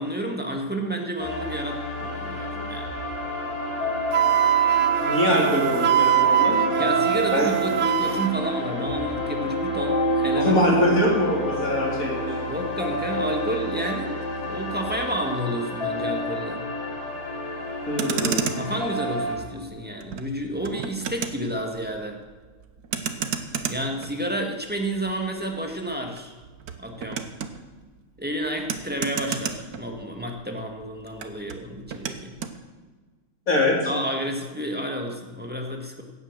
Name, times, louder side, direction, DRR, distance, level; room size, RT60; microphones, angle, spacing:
voice 1, 0.0-2.9 6.8-10.6 12.5-14.2 14.4-16.6 18.6-22.2 23.7-26.3 26.8-27.2 28.2-32.3 33.8-36.0, right 1 dB, 5° right, 2 dB, 1.7 m, -30 dB
sound 1, 1.2-19.4, equal, 85° left, 4.7 m, -29 dB
Wind instrument woodwind instrument, 4.1-8.3, right 10 dB, 60° right, 0.9 m, -22 dB
voice 2, 5.0-6.6 7.3-7.5 10.3-12.4 17.9-18.5 33.5-33.8, left 1 dB, 60° left, -2 dB, 3.9 m, -23 dB
Motor vehicle (road), 17.8-30.4 30.7-32.6, right 6 dB, 75° right, 1.4 m, -34 dB
16.0 x 9.0 x 6.7 m, 1.4 s
omnidirectional pair, 1.6 m